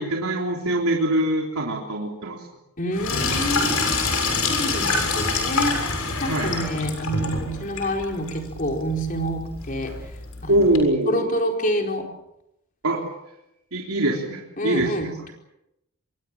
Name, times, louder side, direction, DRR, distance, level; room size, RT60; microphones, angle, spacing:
voice 1, 0.0-2.4 6.3-6.5 10.5-11.3 12.8-13.0 13.7-15.3, right 1 dB, 80° right, -1 dB, 3.6 m, -23 dB
voice 2, 2.8-4.1 4.5-5.9 6.2-9.9 10.4-10.7 11.1-12.1 14.6-15.3, equal, 35° left, 3 dB, 4.5 m, -27 dB
Sink (filling or washing), 2.9-10.8, left 3 dB, 80° left, 6.9 m, -26 dB
27.0 x 23.0 x 7.4 m, 0.85 s
head